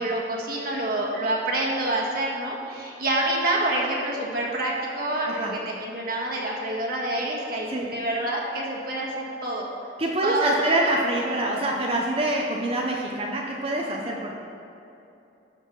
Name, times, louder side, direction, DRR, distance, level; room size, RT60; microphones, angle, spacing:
voice 1, 0.0-9.7 10.2-10.8, right 1 dB, 55° right, -2 dB, 1.7 m, -27 dB
voice 2, 10.0-14.4, right 1 dB, 30° right, -1 dB, 0.8 m, -26 dB
12.0 x 6.4 x 4.6 m, 2.8 s
head